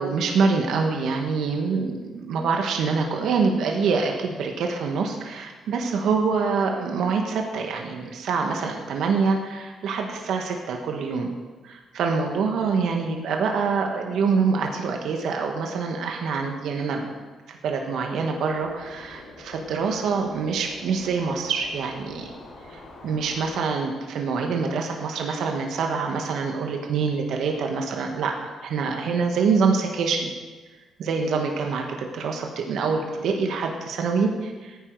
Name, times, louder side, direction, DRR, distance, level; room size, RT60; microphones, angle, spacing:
voice 1, 0.0-11.3 11.6-17.1 17.5-22.3 22.7-30.3 31.0-34.8, right 5 dB, 75° right, 2 dB, 1.6 m, -25 dB
sound 1, 18.5-23.6, left 2 dB, 75° left, 3.2 m, -45 dB
14.5 x 9.6 x 4.8 m, 1.3 s
cardioid pair, 90°, 0 cm